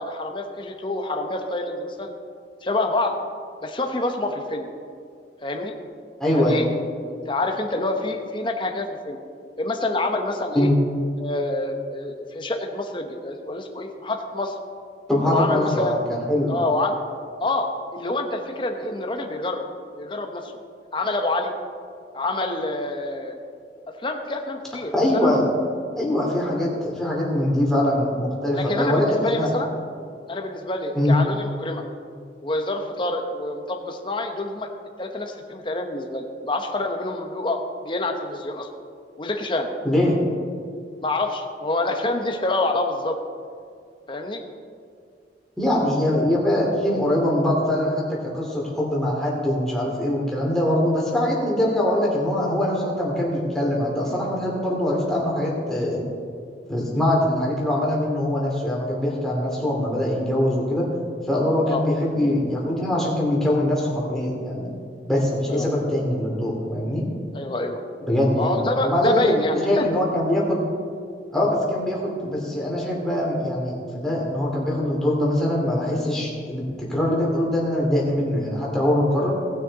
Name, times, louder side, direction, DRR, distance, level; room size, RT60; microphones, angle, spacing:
voice 1, 0.0-2.1 2.6-3.1 3.6-4.7 5.4-5.7 6.3-6.8 7.1-9.2 9.6-10.7 11.2-14.5 15.3-16.0 16.5-16.9 17.4-19.7 20.0-20.5 20.9-21.5 22.1-23.4 24.0-25.3 28.5-29.7 30.3-31.8 32.4-34.7 35.0-38.7 39.2-39.7 41.0-43.2 44.1-44.4 61.7-61.9 65.5-65.7 67.3-67.8 68.3-69.8, left 2 dB, 30° left, 4 dB, 1.0 m, -27 dB
voice 2, 6.2-6.6 10.5-10.8 15.1-16.5 24.9-25.5 26.0-29.6 30.9-31.2 39.8-40.2 45.6-56.0 56.7-60.9 61.3-64.7 65.1-67.1 68.1-69.3 69.6-70.6 71.3-76.6 76.9-79.3, left 1 dB, 5° left, -5 dB, 2.6 m, -22 dB
18.5 x 6.5 x 4.1 m, 2.3 s
head